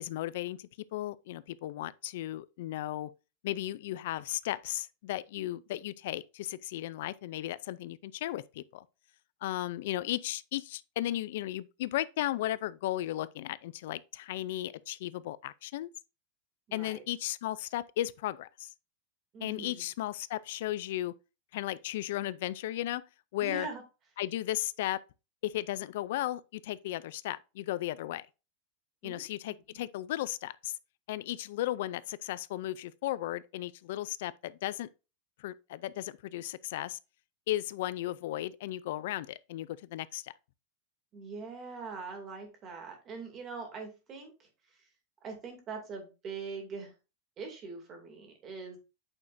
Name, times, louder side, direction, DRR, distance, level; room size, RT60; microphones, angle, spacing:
voice 1, 0.0-3.1 3.4-8.8 9.4-15.9 16.7-18.7 19.4-21.2 21.5-23.0 23.3-23.7 24.2-25.0 25.4-28.3 29.0-30.8 31.1-34.9 35.4-37.0 37.5-40.3, left 14 dB, 65° left, 0.4 m, -35 dB
voice 2, 16.7-17.0 19.3-19.9 23.4-23.8 29.0-29.2 41.1-44.8 45.2-46.9 47.4-48.8, right 4 dB, 25° right, 2.5 m, -42 dB
8.7 x 6.4 x 2.6 m
supercardioid pair, 165°, 0 cm